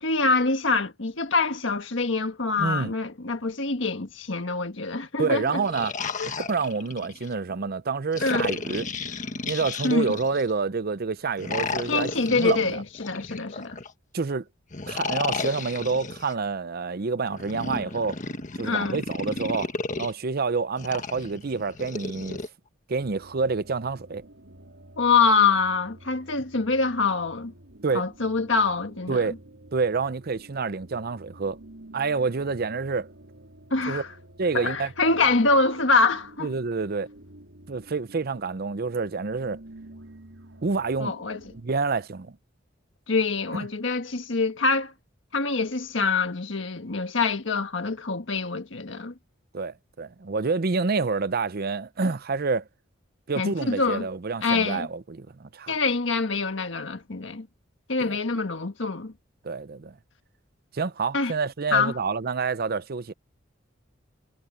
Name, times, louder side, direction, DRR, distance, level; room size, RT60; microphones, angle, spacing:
voice 1, 0.0-5.6 6.2-6.3 8.2-8.5 9.8-10.1 11.9-13.8 18.6-19.0 25.0-27.5 27.9-29.2 33.7-34.1 34.5-36.5 41.0-41.4 43.1-44.9 45.3-49.1 53.4-54.1 54.4-54.9 55.7-57.5 57.9-59.1 61.1-61.3 61.7-61.9, left 4 dB, 70° left, 1.6 m, -25 dB
voice 2, 2.6-2.9 5.2-5.9 6.2-8.9 9.4-12.8 14.1-14.5 14.9-18.2 18.6-19.7 20.0-22.4 22.9-24.2 27.8-28.1 29.1-29.3 29.7-31.6 31.9-33.1 33.9-34.0 34.4-34.9 35.2-35.3 36.4-37.1 37.7-39.6 40.6-41.2 41.6-42.4 43.5-43.7 49.5-52.7 53.3-55.7 58.0-58.2 59.4-60.0 60.7-63.1, right 4 dB, 50° right, 0.6 m, -28 dB
sound 1, 5.4-7.3 8.1-10.5 11.4-13.9 14.7-16.3 17.3-20.1 20.8-22.5, left 3 dB, 40° left, 1.5 m, -33 dB
sound 2, 23.0-41.6, right 1 dB, 85° right, 4.1 m, -50 dB
head